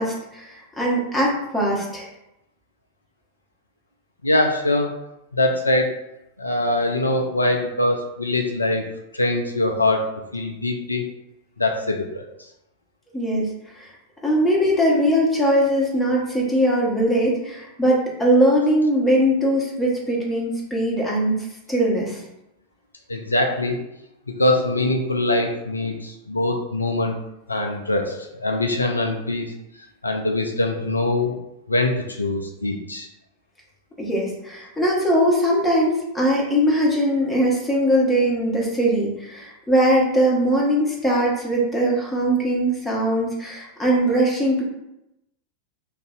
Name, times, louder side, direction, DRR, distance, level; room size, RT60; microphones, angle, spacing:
voice 1, 0.0-2.1 13.1-13.5 13.7-13.9 14.2-22.2 34.0-44.6, equal, 5° left, -4 dB, 1.1 m, -21 dB
voice 2, 4.2-4.9 5.3-5.9 6.4-8.9 9.1-11.0 11.6-12.2 23.1-23.8 24.4-27.2 27.5-29.5 30.0-31.3 31.7-33.1, left 2 dB, 80° left, 2 dB, 0.4 m, -23 dB
3.2 x 2.6 x 3.7 m, 0.88 s
figure-of-eight pair, 90°, 0 cm